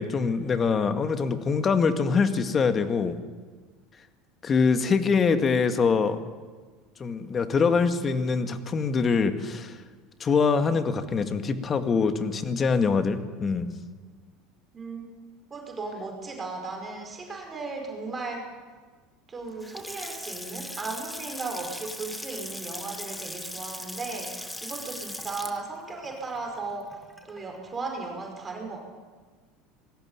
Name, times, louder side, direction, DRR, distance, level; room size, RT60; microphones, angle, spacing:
voice 1, 0.0-3.2 4.4-6.2 7.0-9.8 10.2-13.7, left 5 dB, 35° left, 9 dB, 2.0 m, -24 dB
voice 2, 14.7-15.1 15.5-18.5 19.3-26.9 27.2-28.8, right 3 dB, 25° right, 2 dB, 5.4 m, -36 dB
Water tap faucet / Sink (filling or washing) / Splash splatter, 19.5-27.6, left 1 dB, 5° left, 1.7 m, -39 dB
20.0 x 16.0 x 9.1 m, 1.4 s
hypercardioid pair, 80°, 0 cm